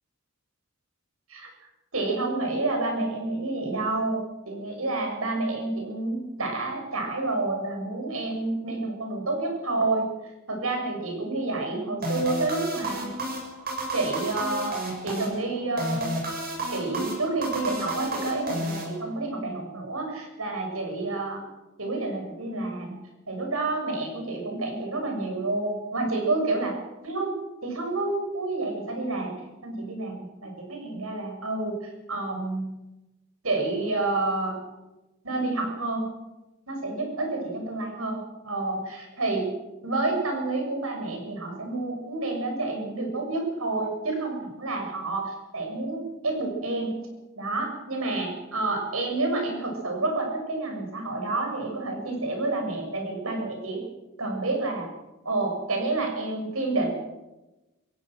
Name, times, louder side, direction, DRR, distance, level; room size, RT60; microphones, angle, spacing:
voice 1, 1.9-4.2 4.4-10.1 10.5-13.1 13.9-14.8 15.0-16.1 16.7-21.4 21.8-22.9 23.3-26.7 27.0-27.3 27.6-29.3 29.6-31.8 32.1-32.7 33.4-34.6 35.2-36.1 36.7-39.5 39.8-46.9 47.3-53.8 54.2-54.9 55.2-56.9, right 2 dB, 90° right, 2 dB, 6.8 m, -29 dB
sound 1, 12.0-19.4, right 1 dB, 45° right, 7.5 m, -32 dB
26.5 x 17.0 x 6.3 m, 1.1 s
head